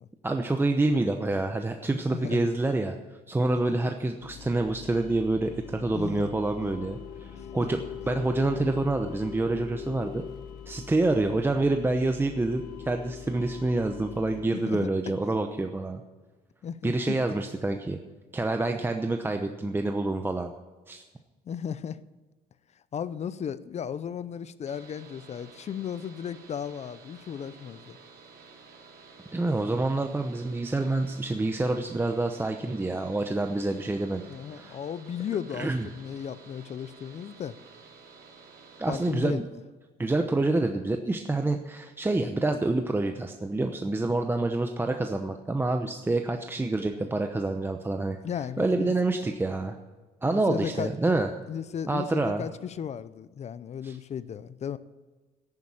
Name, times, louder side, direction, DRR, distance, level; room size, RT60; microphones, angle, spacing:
voice 1, 0.2-3.0 3.3-10.2 10.7-16.0 16.8-18.0 18.3-20.5 20.9-21.0 29.3-34.2 34.5-34.8 35.6-35.9 38.8-39.4 40.0-48.2 48.6-49.8 50.2-51.3 51.9-52.4 53.8-54.0, right 2 dB, 15° right, 5 dB, 0.8 m, -27 dB
sound 1, 4.2-14.4, left 8 dB, 90° left, 1.5 m, -42 dB
voice 2, 5.7-6.3 7.6-7.7 14.5-14.9 16.6-17.2 21.5-22.0 22.9-28.0 34.3-37.6 38.9-39.4 48.2-49.0 50.3-50.9 51.5-54.8, left 8 dB, 40° left, 16 dB, 0.6 m, -35 dB
sound 2, 24.7-39.1, right 5 dB, 70° right, 2.5 m, -52 dB
11.0 x 9.8 x 8.8 m, 1.3 s
cardioid pair, 110°, 17 cm